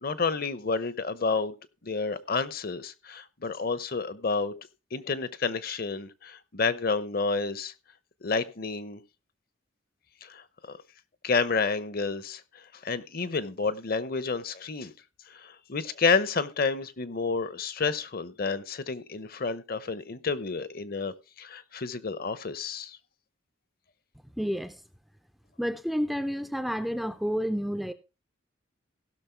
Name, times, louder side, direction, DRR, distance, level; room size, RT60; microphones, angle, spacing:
voice 1, 0.0-1.5 1.8-7.7 8.2-9.0 10.2-10.8 11.2-14.9 15.3-23.0, left 4 dB, 45° left, 0.8 m, -30 dB
voice 2, 24.4-24.8 25.6-27.9, equal, ahead, 0.5 m, -30 dB
16.5 x 6.3 x 4.5 m
head